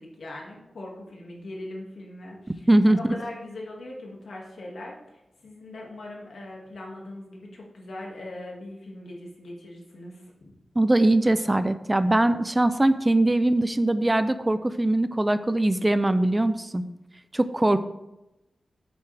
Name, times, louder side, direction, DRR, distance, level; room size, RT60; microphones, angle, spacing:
voice 1, 0.0-10.5, left 1 dB, 80° left, -2 dB, 2.0 m, -40 dB
voice 2, 2.7-3.1 10.8-16.8 17.3-17.8, right 1 dB, 15° right, 12 dB, 0.3 m, -21 dB
8.8 x 7.0 x 3.4 m, 0.94 s
wide cardioid pair, 145°, 0 cm